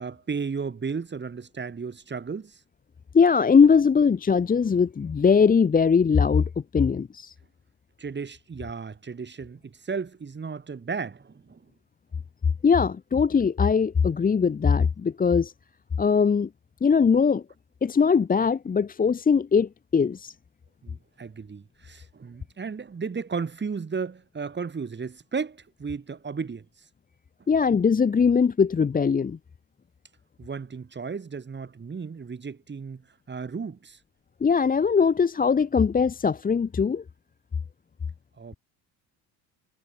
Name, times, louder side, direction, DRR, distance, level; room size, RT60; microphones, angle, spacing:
voice 1, 0.0-2.6 8.0-11.6 20.8-26.6 30.4-34.0 38.4-38.6, right 5 dB, 25° right, 1.5 m, -34 dB
voice 2, 3.1-7.3 12.6-15.5 16.0-16.5 16.8-17.4 17.8-20.3 27.5-29.4 34.4-37.0, left 6 dB, 20° left, 0.6 m, -21 dB
supercardioid pair, 75°, 44 cm